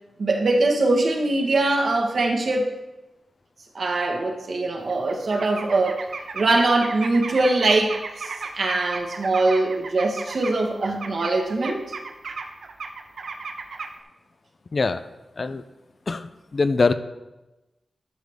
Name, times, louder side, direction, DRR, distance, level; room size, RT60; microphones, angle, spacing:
voice 1, 0.2-2.7 3.7-6.0 6.3-11.8, right 2 dB, 55° right, 1 dB, 1.3 m, -22 dB
sound 1, 4.9-10.6 10.8-13.9, right 4 dB, 75° right, 0.7 m, -34 dB
voice 2, 14.7-15.0 15.4-15.6 16.1-16.9, left 4 dB, 40° left, 11 dB, 0.4 m, -23 dB
12.0 x 6.6 x 3.5 m, 1.0 s
wide cardioid pair, 130°, 0 cm